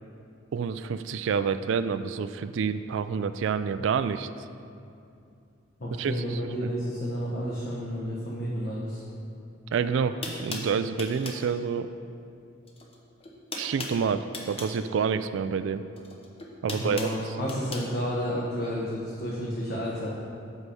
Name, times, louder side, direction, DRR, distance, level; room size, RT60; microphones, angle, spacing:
voice 1, 0.5-4.3 6.0-6.7 9.7-11.9 13.5-15.8 16.6-17.0, right 6 dB, 65° right, 12 dB, 0.3 m, -28 dB
voice 2, 5.8-9.0 16.7-20.1, equal, 45° left, -6 dB, 1.2 m, -31 dB
sound 1, 9.7-9.8 10.2-11.5 12.6-13.0 13.2-14.8 15.9-17.9, left 2 dB, 30° left, 0.9 m, -38 dB
8.0 x 5.5 x 6.9 m, 2.5 s
head